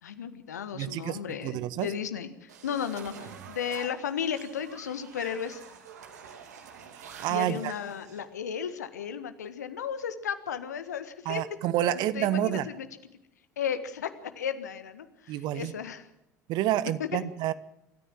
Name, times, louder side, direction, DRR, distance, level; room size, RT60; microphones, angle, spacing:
voice 1, 0.0-5.6 7.3-11.4 11.8-12.9 13.6-16.1 17.0-17.2, left 8 dB, 75° left, 11 dB, 1.5 m, -34 dB
voice 2, 0.7-1.9 6.9-7.7 11.2-12.7 15.3-15.7 16.5-17.5, right 13 dB, 55° right, 16 dB, 1.1 m, -29 dB
sound 1, 2.5-8.2, right 7 dB, 75° right, 2.6 m, -47 dB
26.0 x 14.0 x 7.5 m, 0.84 s
figure-of-eight pair, 60°, 9 cm